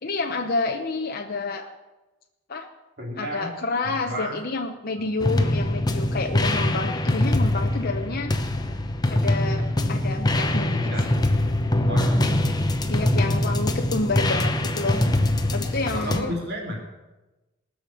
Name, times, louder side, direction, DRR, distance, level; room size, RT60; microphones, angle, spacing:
voice 1, 0.0-1.7 2.5-2.7 3.2-8.3 9.1-10.9 12.9-15.0 15.5-16.3, left 3 dB, 45° left, 3 dB, 0.8 m, -29 dB
voice 2, 3.0-3.5 3.8-4.4 5.0-5.1 10.7-11.1 11.9-12.7 15.9-16.9, left 1 dB, 50° right, 0 dB, 2.6 m, -31 dB
sound 1, 5.2-16.2, left 1 dB, 20° left, 0.9 m, -23 dB
19.5 x 6.7 x 7.0 m, 1.1 s
head